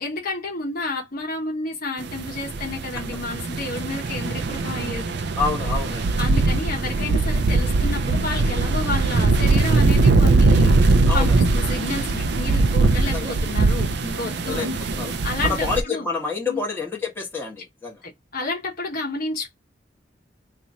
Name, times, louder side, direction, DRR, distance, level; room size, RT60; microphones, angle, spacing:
voice 1, 0.0-5.0 6.2-14.8 15.2-16.1 16.5-16.6 18.0-19.5, left 2 dB, 55° left, 1.1 m, -30 dB
sound 1, 2.1-15.8, right 3 dB, 65° right, 0.5 m, -21 dB
voice 2, 5.4-6.1 11.1-11.4 13.1-13.3 14.4-14.7 14.9-15.1 15.4-18.0, left 4 dB, 10° left, 1.4 m, -28 dB
2.9 x 2.5 x 4.0 m
head